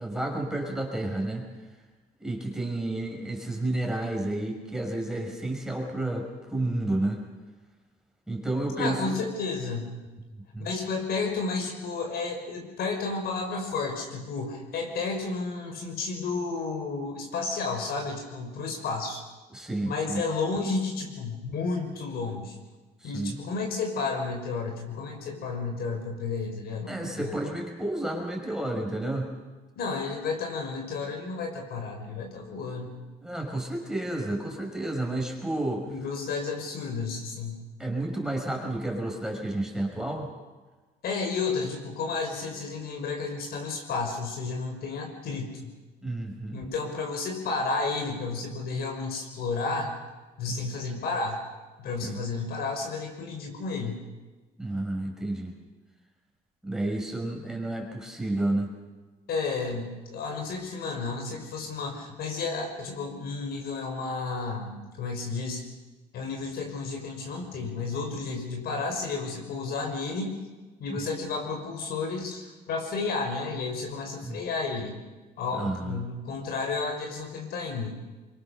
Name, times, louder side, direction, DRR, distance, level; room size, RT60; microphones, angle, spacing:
voice 1, 0.0-1.4 2.2-7.2 8.3-9.2 10.5-10.7 19.5-20.2 23.0-23.4 26.9-29.3 33.2-35.9 37.8-40.3 46.0-46.6 50.5-50.6 52.0-52.2 54.6-55.5 56.6-58.7 70.9-71.0 74.2-74.4 75.5-76.0, right 1 dB, 5° right, 1 dB, 5.6 m, -31 dB
voice 2, 8.8-9.9 10.6-19.2 19.8-22.6 23.0-27.3 29.8-33.0 35.9-37.6 41.0-45.7 46.5-49.9 50.4-51.4 51.8-54.0 59.3-65.6 66.1-70.4 70.8-75.0 75.4-78.0, left 4 dB, 70° left, 3 dB, 5.8 m, -32 dB
24.0 x 23.5 x 6.8 m, 1.3 s
cardioid pair, 110°, 17 cm